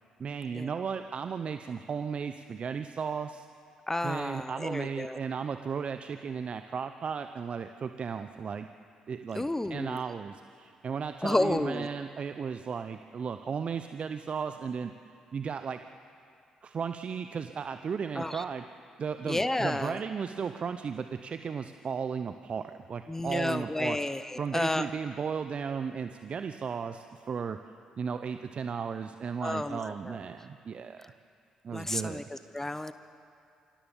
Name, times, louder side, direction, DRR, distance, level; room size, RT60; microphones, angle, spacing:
voice 1, 0.2-3.5 4.0-8.7 9.1-14.9 15.3-15.8 16.6-18.7 19.0-24.0 24.4-27.6 28.0-31.1 31.6-32.2, right 6 dB, 50° right, 9 dB, 0.7 m, -35 dB
voice 2, 3.9-5.2 9.3-10.0 11.2-11.9 18.1-18.4 19.2-20.0 23.1-24.8 29.4-30.2 31.7-32.9, left 1 dB, 15° left, 11 dB, 0.9 m, -31 dB
25.5 x 17.5 x 7.2 m, 2.4 s
hypercardioid pair, 45°, 3 cm